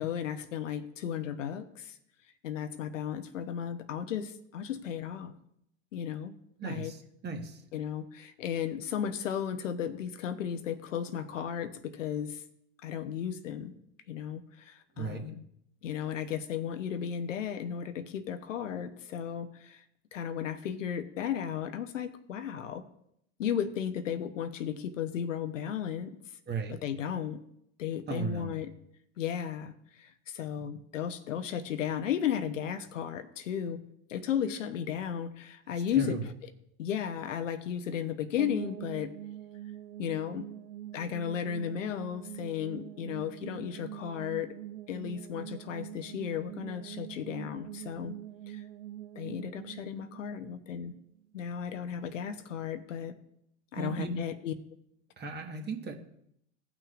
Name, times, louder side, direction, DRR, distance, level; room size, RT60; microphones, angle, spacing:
voice 1, 0.0-1.9 2.4-5.3 5.9-6.3 6.6-6.9 7.7-12.4 12.8-13.7 14.1-15.5 15.8-19.8 20.1-22.8 23.4-26.2 26.7-27.4 27.8-28.7 29.2-29.7 30.0-33.8 34.1-36.2 36.8-39.1 40.0-40.4 40.9-44.5 44.9-48.1 48.5-48.6 49.2-50.9 51.3-53.1 53.7-54.5, left 9 dB, 85° left, 9 dB, 0.9 m, -34 dB
voice 2, 6.6-7.6 15.0-15.3 26.5-26.7 28.1-28.6 36.0-36.2 53.7-54.2 55.2-55.9, right 4 dB, 25° right, 4 dB, 1.4 m, -36 dB
sound 1, 38.4-51.3, right 13 dB, 60° right, 0.6 m, -44 dB
17.5 x 6.0 x 2.5 m, 0.74 s
hypercardioid pair, 95°, 37 cm